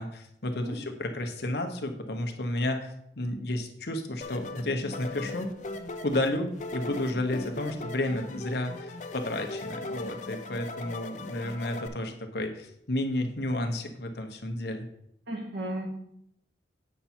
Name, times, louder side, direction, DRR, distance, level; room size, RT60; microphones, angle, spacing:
voice 1, 0.0-5.5 6.0-14.9, left 1 dB, 60° left, 5 dB, 1.0 m, -32 dB
sound 1, 4.2-11.9, left 2 dB, 40° left, 0.6 m, -39 dB
voice 2, 15.3-15.9, right 1 dB, 75° right, -1 dB, 2.2 m, -34 dB
8.3 x 5.8 x 4.4 m, 0.75 s
head